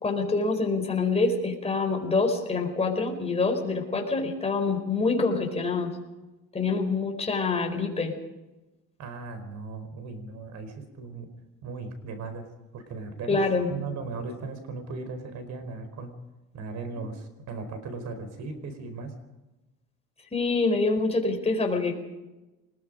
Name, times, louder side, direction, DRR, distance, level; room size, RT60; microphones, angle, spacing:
voice 1, 0.0-5.9 6.5-8.1 13.3-13.7 17.0-17.1 20.3-22.0, left 3 dB, 20° left, 3 dB, 4.8 m, -26 dB
voice 2, 9.0-11.3 11.6-12.5 12.7-13.4 13.7-16.1 16.5-19.1, right 4 dB, 60° right, 9 dB, 4.5 m, -37 dB
25.5 x 20.5 x 5.2 m, 1.1 s
cardioid pair, 115°, 31 cm